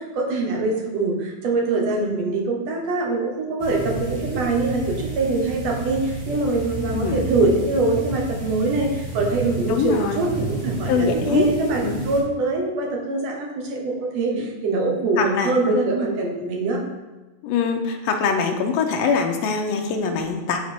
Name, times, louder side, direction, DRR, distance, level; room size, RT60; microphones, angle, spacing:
voice 1, 0.0-16.8, right 3 dB, 60° right, 0 dB, 2.2 m, -23 dB
sound 1, 3.6-12.2, right 2 dB, 30° right, 0.6 m, -31 dB
voice 2, 6.9-7.2 9.7-10.5 10.9-11.5 11.8-12.0 14.3-14.5 15.2-15.8 17.4-20.6, left 5 dB, 80° left, 3 dB, 1.5 m, -23 dB
9.5 x 4.1 x 4.4 m, 1.2 s
omnidirectional pair, 3.6 m